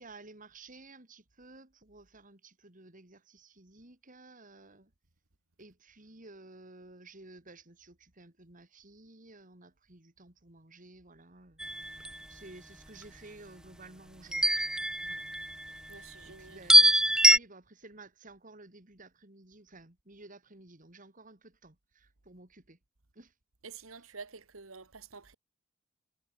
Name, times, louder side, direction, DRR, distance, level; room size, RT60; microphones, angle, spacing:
voice 1, 0.0-4.9 5.6-14.7 15.0-15.3 15.9-22.8 23.1-23.3 24.0-24.1, right 2 dB, 40° right, 3.2 m, -54 dB
sound 1, 11.6-12.2 14.3-15.7 16.7-17.4, right 1 dB, 5° right, 0.5 m, -23 dB
voice 2, 15.9-16.6 23.6-25.3, right 5 dB, 90° right, 2.0 m, -48 dB
head